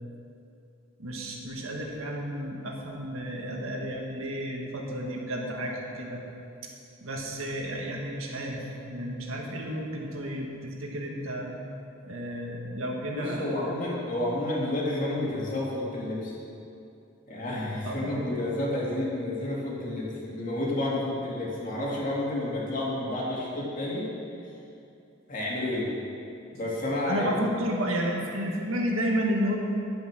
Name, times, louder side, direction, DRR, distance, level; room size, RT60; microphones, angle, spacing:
voice 1, 1.0-6.2 7.0-11.5 12.1-13.5 17.8-18.2 27.1-29.6, equal, 85° right, 0 dB, 1.7 m, -32 dB
voice 2, 13.1-16.3 17.3-24.1 25.3-25.9 26.5-27.5, left 1 dB, 40° left, -5 dB, 2.4 m, -30 dB
10.5 x 8.0 x 6.1 m, 2.7 s
head